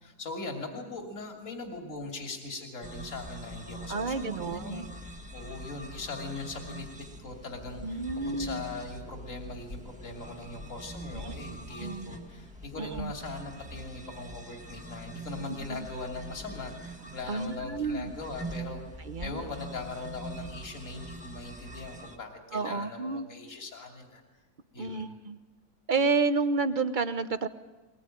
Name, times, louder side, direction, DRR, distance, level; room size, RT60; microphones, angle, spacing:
voice 1, 0.0-6.9 7.2-24.2 24.7-25.2, left 3 dB, 50° left, 2 dB, 3.2 m, -40 dB
sound 1, 2.8-22.2, right 1 dB, 5° right, 1.5 m, -44 dB
voice 2, 3.9-4.9 7.8-8.6 11.1-11.3 11.8-12.1 12.8-13.1 15.7-15.9 17.3-18.1 19.1-19.4 22.5-23.3 24.8-25.4 25.9-27.5, right 4 dB, 35° right, 11 dB, 0.9 m, -30 dB
22.0 x 20.5 x 9.1 m, 1.2 s
omnidirectional pair, 1.7 m